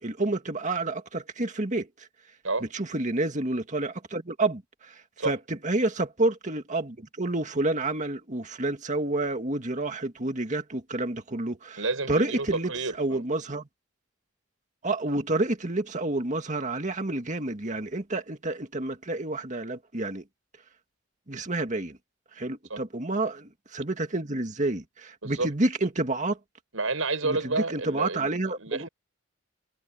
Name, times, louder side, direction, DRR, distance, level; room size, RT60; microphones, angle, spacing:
voice 1, 0.0-2.1 2.6-12.7 13.0-13.7 14.8-20.2 21.3-22.0 22.4-26.4 27.2-28.9, right 2 dB, 35° right, 2.1 m, -29 dB
voice 2, 11.8-13.3 22.7-22.8 25.2-25.5 26.7-28.9, right 3 dB, 85° right, 6.1 m, -30 dB
head